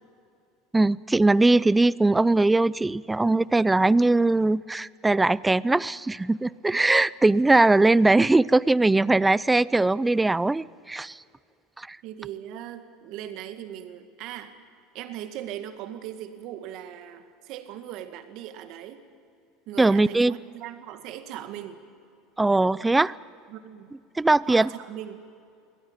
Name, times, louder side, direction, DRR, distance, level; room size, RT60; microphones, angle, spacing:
voice 1, 0.7-11.2 11.8-12.0 19.8-20.3 22.4-23.1 24.2-24.7, right 2 dB, 10° right, 21 dB, 0.5 m, -20 dB
voice 2, 12.0-14.5 14.9-19.0 19.7-21.8 23.5-23.9 24.5-25.2, right 11 dB, 60° right, 8 dB, 2.0 m, -39 dB
22.5 x 17.5 x 9.0 m, 2.4 s
hypercardioid pair, 95°, 0 cm